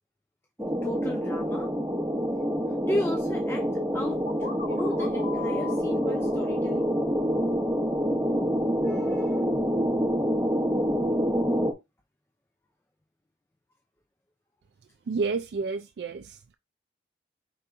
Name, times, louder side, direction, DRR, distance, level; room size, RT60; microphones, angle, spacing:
voice 1, 0.6-1.7 2.8-3.7 3.9-6.9 8.8-9.4, left 1 dB, 15° left, 0.4 m, -34 dB
sound 1, 0.6-11.7, equal, 10° right, 0.9 m, -27 dB
sound 2, 4.3-8.0, left 5 dB, 55° left, 0.8 m, -42 dB
voice 2, 15.1-16.5, right 4 dB, 65° right, 0.3 m, -30 dB
4.8 x 2.9 x 3.4 m
head